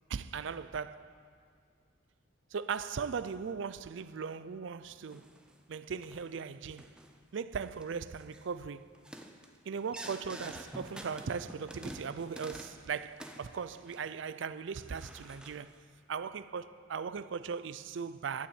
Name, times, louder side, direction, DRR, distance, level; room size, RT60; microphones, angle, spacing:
voice 1, 0.1-1.1 2.5-5.3 5.7-6.9 7.3-8.9 9.7-15.7 16.1-18.5, right 6 dB, 60° right, 0.4 m, -38 dB
sound 1, 5.1-5.6 6.0-6.3 6.8-7.2 7.5-7.8 8.2-8.5 8.9-12.8 13.1-14.3 14.8-15.7, right 1 dB, 5° right, 0.6 m, -48 dB
12.0 x 7.0 x 8.8 m
head